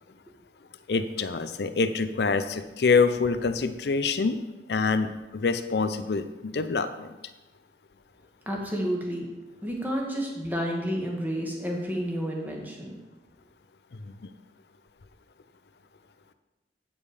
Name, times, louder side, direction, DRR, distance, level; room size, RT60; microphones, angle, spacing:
voice 1, 0.9-4.4 4.7-7.1 14.2-14.3, left 4 dB, 65° left, 10 dB, 0.5 m, -26 dB
voice 2, 8.5-9.3 9.6-13.0, equal, 10° right, -1 dB, 1.3 m, -30 dB
8.5 x 5.4 x 4.9 m, 1.1 s
head